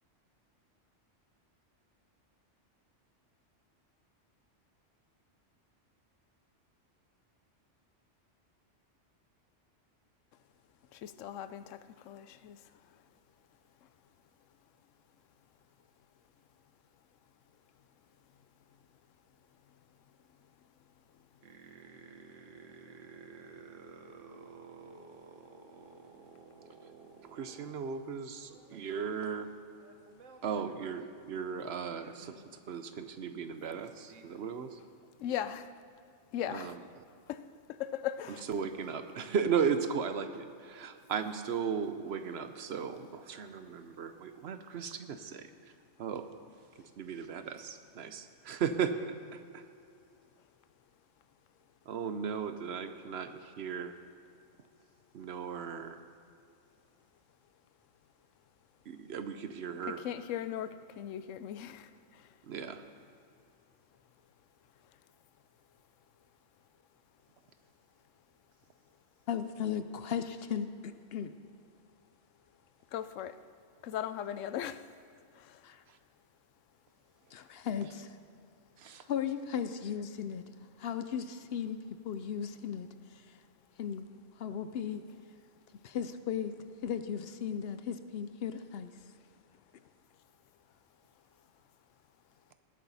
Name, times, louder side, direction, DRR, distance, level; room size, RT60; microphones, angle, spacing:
voice 1, 10.9-12.6 35.2-35.7 36.3-36.8 37.3-37.4 37.7-38.5 59.9-62.3 72.9-73.4 73.8-74.8 75.3-75.6, left 10 dB, 90° left, 13 dB, 0.9 m, -38 dB
sound 1, 21.4-27.9 28.4-29.0 29.7-32.4 33.0-33.1 33.3-33.4 33.7-34.4, right 5 dB, 90° right, 1.2 m, -53 dB
voice 2, 27.3-29.5 30.4-34.8 36.5-36.8 38.5-45.5 46.0-46.2 46.8-49.1 49.5-49.6 51.9-54.0 55.1-56.0 58.9-60.0 62.4-62.8 78.8-79.0, right 6 dB, 65° right, 9 dB, 0.9 m, -36 dB
voice 3, 69.3-71.3 75.6-75.8 77.3-78.2 79.1-80.4 80.8-81.8 82.0-82.9 83.8-84.1 84.4-85.0 85.8-86.5 86.8-88.9, left 8 dB, 60° left, 11 dB, 0.7 m, -36 dB
19.5 x 8.8 x 4.1 m, 2.4 s
omnidirectional pair, 1.3 m